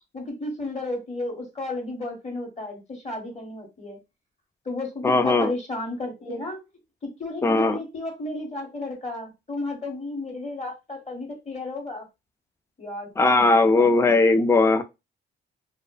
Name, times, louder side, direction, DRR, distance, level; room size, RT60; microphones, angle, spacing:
voice 1, 0.1-4.0 4.6-6.6 7.0-12.1 12.8-14.6, left 2 dB, 35° left, 1.2 m, -33 dB
voice 2, 5.0-5.5 7.4-7.8 13.2-14.8, left 3 dB, 15° left, 0.3 m, -18 dB
2.4 x 2.3 x 2.3 m
cardioid pair, 90°, 20 cm